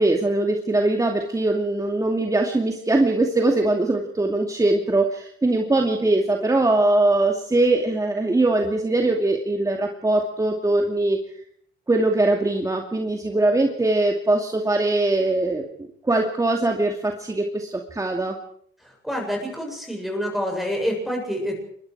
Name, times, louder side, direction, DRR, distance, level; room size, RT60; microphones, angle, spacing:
voice 1, 0.0-11.2 11.9-15.6 16.0-18.4, right 2 dB, 15° right, 2 dB, 2.5 m, -21 dB
voice 2, 19.0-21.6, equal, ahead, 1 dB, 7.6 m, -27 dB
25.5 x 22.0 x 4.8 m, 0.64 s
cardioid pair, 90°, 20 cm